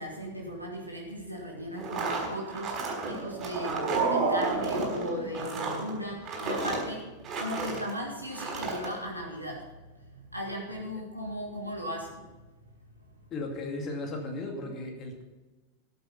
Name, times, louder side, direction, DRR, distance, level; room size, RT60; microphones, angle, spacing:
voice 1, 0.0-12.3 12.6-13.0 13.2-13.3, equal, 90° right, -1 dB, 1.9 m, -37 dB
sound 1, 1.8-7.9 8.3-8.9, right 3 dB, 30° right, 4.7 m, -34 dB
sound 2, 3.1-6.1, right 4 dB, 50° right, 2.4 m, -30 dB
voice 2, 13.3-15.2, left 2 dB, 30° left, 3 dB, 2.5 m, -36 dB
14.0 x 8.1 x 5.6 m, 1.2 s
figure-of-eight pair, 90°, 0 cm